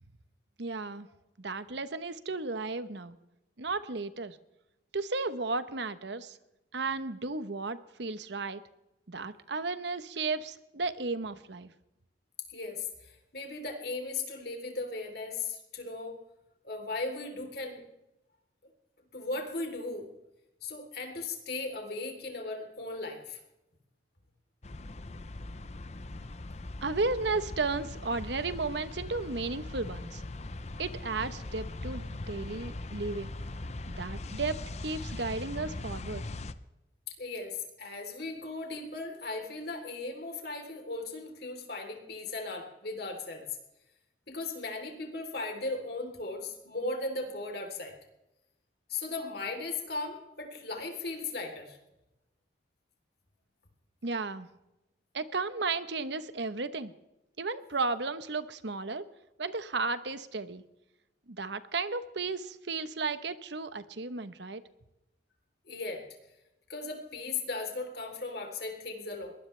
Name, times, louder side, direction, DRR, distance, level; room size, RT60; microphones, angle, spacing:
voice 1, 0.6-1.1 1.4-3.2 3.6-4.4 4.9-6.4 6.7-8.6 9.1-11.7 26.8-30.2 30.8-33.3 33.9-34.6 34.8-36.3 54.0-54.5 55.1-56.9 57.4-59.1 59.4-60.6 61.3-64.6, right 3 dB, 65° right, 12 dB, 1.0 m, -34 dB
voice 2, 12.5-16.2 16.6-17.8 19.1-20.1 20.6-23.4 37.1-43.4 44.3-47.9 48.9-51.8 65.7-66.0 66.7-69.3, left 3 dB, 55° left, 3 dB, 3.5 m, -37 dB
sound 1, 24.6-36.5, left 2 dB, 35° left, 0.7 m, -40 dB
22.0 x 19.5 x 3.3 m, 0.94 s
head